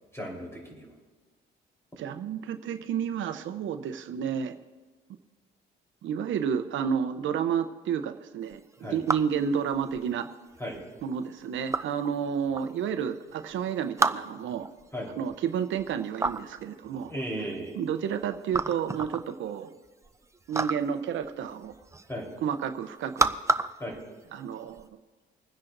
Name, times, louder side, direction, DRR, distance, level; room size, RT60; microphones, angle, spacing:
voice 1, 0.1-0.9 8.8-9.0 10.6-10.8 14.9-15.1 17.1-17.8 22.1-22.3 23.8-24.0, equal, 15° left, -1 dB, 3.9 m, -35 dB
voice 2, 2.0-4.6 6.0-8.6 8.9-10.3 11.0-14.7 15.2-17.1 17.7-19.7 20.5-21.7 22.4-23.4 24.3-24.9, right 7 dB, 75° right, 9 dB, 0.7 m, -30 dB
sound 1, 8.5-24.9, right 3 dB, 15° right, 0.5 m, -33 dB
26.0 x 9.9 x 2.6 m, 1.3 s
cardioid pair, 90°, 20 cm